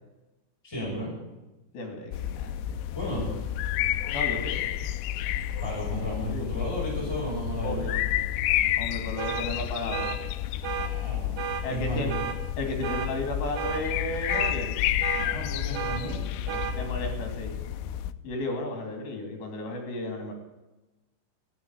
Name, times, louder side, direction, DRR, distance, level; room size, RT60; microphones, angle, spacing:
voice 1, 0.6-1.1 2.9-3.2 5.6-7.8 10.6-12.1 15.1-16.6, right 1 dB, 5° left, -5 dB, 6.3 m, -34 dB
voice 2, 1.7-2.8 4.1-4.7 6.3-6.5 7.6-8.1 8.8-10.2 11.6-12.1 12.6-14.8 16.7-17.6 18.2-20.3, left 2 dB, 65° left, 3 dB, 4.4 m, -34 dB
sound 1, 2.1-18.1, left 12 dB, 90° left, 2.9 m, -30 dB
sound 2, 9.2-9.4 9.9-10.2 10.6-10.9 11.4-11.6 12.1-12.4 12.8-13.1 13.6-13.8 14.3-14.6 15.0-15.3 15.7-16.0 16.5-16.7, right 8 dB, 55° right, 2.2 m, -32 dB
15.0 x 9.0 x 9.6 m, 1.1 s
omnidirectional pair, 4.9 m